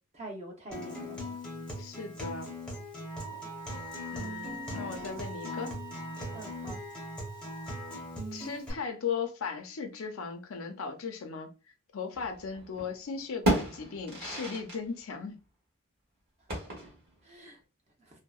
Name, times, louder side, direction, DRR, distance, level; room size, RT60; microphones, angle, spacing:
voice 1, 0.1-1.3 3.3-3.4 6.3-6.8 17.3-17.6, right 1 dB, 30° right, 0.7 m, -45 dB
Acoustic guitar, 0.7-8.7, left 1 dB, 5° left, 0.6 m, -40 dB
voice 2, 1.8-2.5 4.1-5.7 8.3-11.5 11.9-15.4, left 5 dB, 75° left, 0.5 m, -37 dB
Wind instrument woodwind instrument, 3.0-8.0, right 2 dB, 15° right, 1.0 m, -45 dB
sound 1, 12.1-12.9 13.2-14.8 15.1-15.2 16.5-17.1, right 1 dB, 50° right, 1.1 m, -32 dB
2.7 x 2.0 x 2.3 m
head